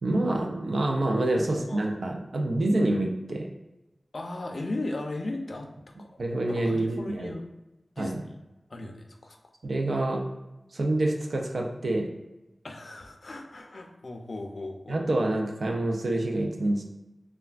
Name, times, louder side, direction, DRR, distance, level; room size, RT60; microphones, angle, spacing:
voice 1, 0.0-3.5 6.2-7.3 8.0-8.2 9.6-10.2 10.7-12.1 14.9-16.8, right 1 dB, 75° right, 1 dB, 0.4 m, -27 dB
voice 2, 1.4-1.9 4.1-6.2 6.5-7.5 8.0-8.4 8.7-9.4 12.6-15.0, left 2 dB, 60° left, 3 dB, 0.4 m, -37 dB
3.3 x 2.2 x 2.3 m, 1.0 s
wide cardioid pair, 85°, 0 cm